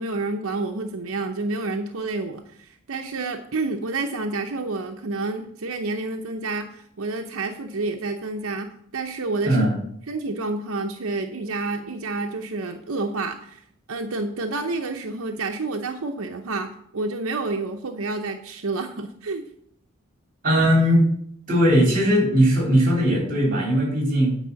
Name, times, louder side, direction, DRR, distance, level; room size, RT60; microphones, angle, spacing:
voice 1, 0.0-9.7 10.1-13.6 13.9-19.4, right 3 dB, 85° right, 4 dB, 0.8 m, -29 dB
voice 2, 9.4-9.8 20.4-21.0 21.5-24.4, equal, 40° right, -1 dB, 3.5 m, -19 dB
9.1 x 4.9 x 6.9 m, 0.68 s
head